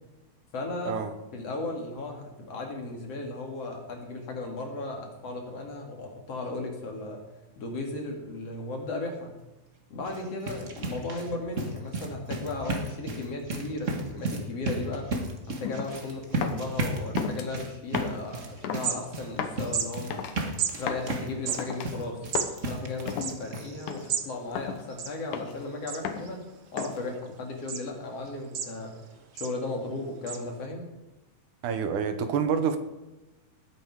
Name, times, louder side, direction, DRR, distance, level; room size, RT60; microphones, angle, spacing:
voice 1, 0.5-1.0 1.3-7.2 7.6-9.4 9.9-15.0 15.5-20.5 20.7-22.2 22.6-26.4 26.7-28.9 29.3-30.9, left 2 dB, 50° left, 3.2 m, -36 dB
sound 1, 9.9-23.3 23.5-23.7 24.1-24.2 24.5-24.6, right 2 dB, 35° right, 1.2 m, -34 dB
sound 2, 15.6-16.0 16.4-16.7 17.2-17.5 17.9-18.3 18.6-18.9 19.4-19.6 20.1-20.4 20.9-21.1 21.6-21.9 22.4-22.6 23.1-23.4 23.9-24.1 24.6-24.8 25.3-25.6 26.0-26.3 26.8-27.1, left 7 dB, 80° left, 2.6 m, -34 dB
sound 3, 18.2-18.3 18.6-19.4 19.7-19.9 20.6-20.7 21.3-24.3 24.6-24.7 24.9-25.5 25.9-26.3 26.8-27.3 27.7-27.8 28.3-29.0 29.4-29.6 30.3-30.4, right 8 dB, 55° right, 1.8 m, -33 dB
voice 2, 31.6-32.8, right 6 dB, 75° right, 2.5 m, -27 dB
18.5 x 9.3 x 4.8 m
omnidirectional pair, 3.7 m